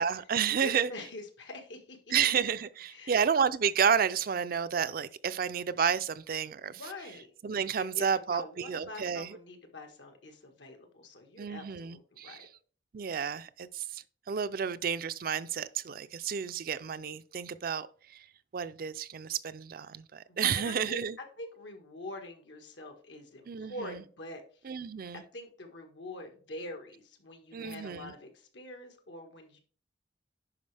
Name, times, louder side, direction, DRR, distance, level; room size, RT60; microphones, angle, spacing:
voice 1, 0.0-0.9 2.1-6.8 7.4-9.4 11.4-12.5 12.9-18.3 18.5-21.2 23.5-24.0 24.6-25.2 27.5-28.1, right 7 dB, 55° right, 0.4 m, -31 dB
voice 2, 0.6-2.1 2.9-3.2 6.7-7.3 7.8-12.5 20.3-21.0 21.4-24.4 25.1-29.6, left 1 dB, 80° left, 1.7 m, -45 dB
10.5 x 4.9 x 3.4 m
head